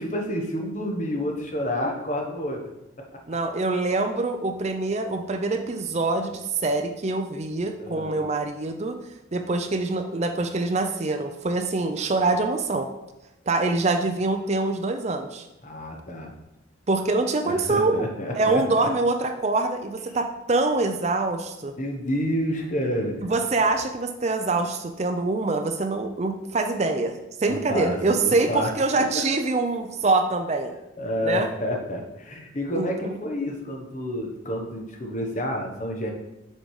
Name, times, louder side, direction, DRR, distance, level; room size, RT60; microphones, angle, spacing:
voice 1, 0.0-2.6 7.8-8.2 15.6-16.3 17.4-18.9 21.8-23.2 27.5-28.7 31.0-36.1, equal, 40° left, 1 dB, 1.1 m, -29 dB
voice 2, 3.3-9.0 9.3-12.9 13.5-15.5 16.9-18.1 18.3-21.7 23.2-27.1 27.4-30.7 31.2-31.5 32.7-33.2, right 3 dB, 35° right, 6 dB, 0.5 m, -25 dB
6.4 x 5.0 x 4.8 m, 0.94 s
head